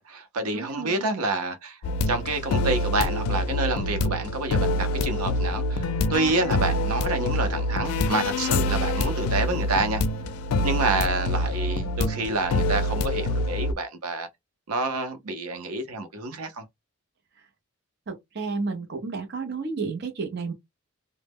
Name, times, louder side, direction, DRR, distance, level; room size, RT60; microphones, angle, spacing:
voice 1, 0.0-1.8 2.1-10.0 10.6-14.3 14.7-16.6, right 2 dB, 90° right, 0.6 m, -28 dB
voice 2, 0.5-1.1 18.1-20.5, right 4 dB, 50° right, 0.5 m, -31 dB
sound 1, 1.8-13.7, left 1 dB, 90° left, 0.4 m, -26 dB
2.0 x 2.0 x 3.4 m
head